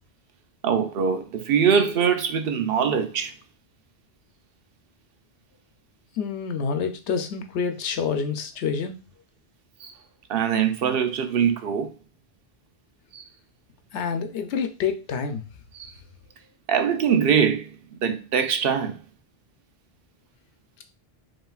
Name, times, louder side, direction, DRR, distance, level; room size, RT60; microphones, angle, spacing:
voice 1, 0.6-3.3 9.8-9.9 10.3-11.9 13.1-13.2 15.7-15.9 16.7-17.7 18.0-19.0, right 7 dB, 65° right, 0.8 m, -23 dB
voice 2, 6.2-9.0 13.9-15.4, left 6 dB, 85° left, 0.9 m, -27 dB
5.5 x 2.9 x 2.3 m
omnidirectional pair, 1.1 m